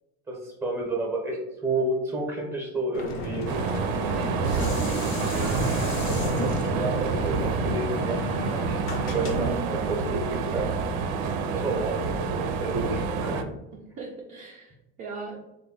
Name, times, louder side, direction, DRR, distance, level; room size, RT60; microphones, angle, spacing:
voice 1, 0.3-3.5 5.3-5.4 6.0-8.2 8.5-8.8 9.1-10.7 11.5-12.1 12.6-13.4, right 2 dB, 10° right, 0 dB, 0.7 m, -30 dB
sound 1, 2.9-9.6, left 2 dB, 40° left, 0.6 m, -33 dB
sound 2, 3.5-13.4, right 5 dB, 90° right, 0.5 m, -28 dB
Dishes pots and pans, 3.8-9.1 9.7-9.8, left 4 dB, 85° left, 0.8 m, -38 dB
voice 2, 4.5-4.8 5.8-6.0 13.7-15.4, right 3 dB, 25° right, -2 dB, 0.4 m, -39 dB
3.6 x 2.2 x 3.8 m, 0.92 s
cardioid pair, 170°, 32 cm